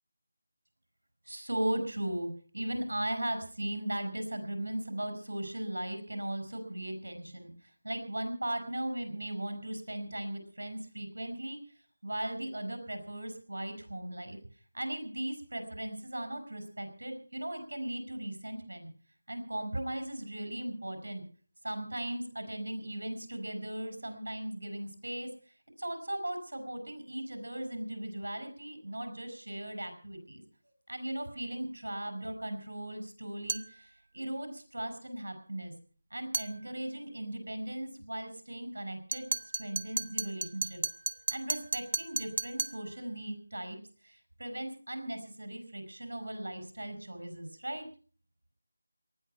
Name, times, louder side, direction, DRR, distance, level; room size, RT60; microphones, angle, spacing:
voice 1, 1.2-11.6 12.0-14.4 14.7-18.9 19.3-21.2 21.6-25.3 25.8-30.4 30.9-35.7 36.1-39.3 39.6-40.8 41.3-43.8 44.0-47.9, right 1 dB, 80° right, 8 dB, 6.2 m, -37 dB
sound 1, 33.5-33.7 36.3-36.5 39.1-42.8, right 4 dB, 45° right, 0.9 m, -34 dB
19.0 x 13.0 x 5.7 m, 0.42 s
figure-of-eight pair, 165°, 0 cm